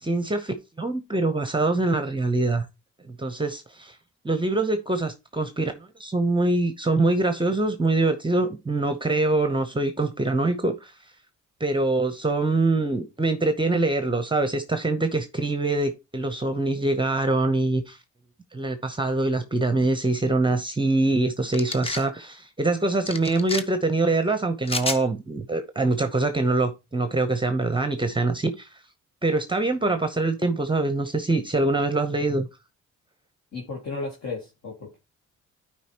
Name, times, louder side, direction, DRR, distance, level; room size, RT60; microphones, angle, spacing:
voice 1, 0.0-2.7 3.1-4.0 4.2-10.9 11.6-18.0 18.5-28.7 29.2-32.5, right 2 dB, 15° right, 0.8 m, -24 dB
sound 1, 21.5-22.1 23.1-23.6 24.6-25.0, left 3 dB, 20° left, 0.7 m, -30 dB
voice 2, 33.5-35.0, left 3 dB, 60° left, 2.1 m, -34 dB
11.5 x 4.9 x 2.9 m
cardioid pair, 90°, 30 cm